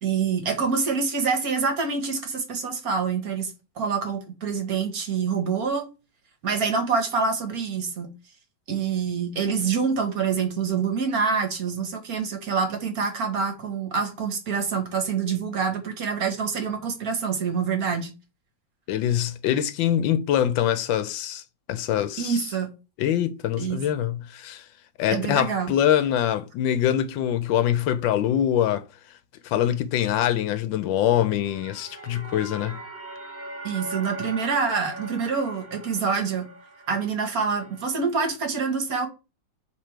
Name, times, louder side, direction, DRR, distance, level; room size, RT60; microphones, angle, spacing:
voice 1, 0.0-5.9 6.4-8.1 8.7-18.1 22.2-22.7 23.6-23.8 25.1-25.7 33.6-36.4 36.9-39.1, right 5 dB, 55° right, 1.5 m, -26 dB
voice 2, 18.9-21.4 21.7-22.5 23.0-24.6 25.0-28.8 29.4-32.8, left 10 dB, 90° left, 1.4 m, -24 dB
sound 1, 31.2-38.1, right 2 dB, 10° right, 0.9 m, -41 dB
6.7 x 3.4 x 4.5 m
omnidirectional pair, 2.0 m